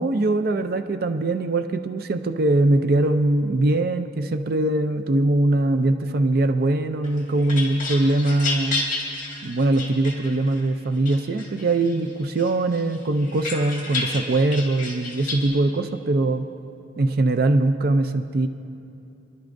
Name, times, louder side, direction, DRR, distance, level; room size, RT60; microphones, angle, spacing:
voice 1, 0.0-8.8 9.4-16.5 17.0-18.5, right 2 dB, 55° right, 8 dB, 0.5 m, -22 dB
sound 1, 7.0-10.6 11.1-12.0 12.4-15.5, left 3 dB, 45° left, 2.2 m, -31 dB
26.5 x 11.5 x 2.6 m, 2.7 s
head